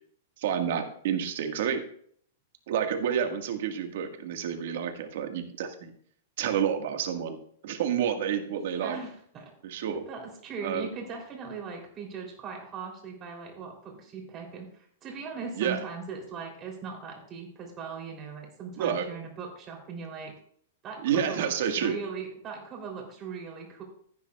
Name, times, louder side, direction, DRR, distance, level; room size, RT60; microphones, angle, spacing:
voice 1, 0.4-1.8 2.7-5.9 6.4-7.4 7.6-9.0 9.6-10.0 10.6-10.9 15.6-15.8 18.8-19.1 21.0-22.0, right 8 dB, 60° right, 5 dB, 1.6 m, -29 dB
voice 2, 8.7-9.5 9.9-20.3 20.8-23.8, right 5 dB, 25° right, 0 dB, 3.2 m, -39 dB
15.0 x 9.5 x 2.4 m, 0.62 s
hypercardioid pair, 155°, 0 cm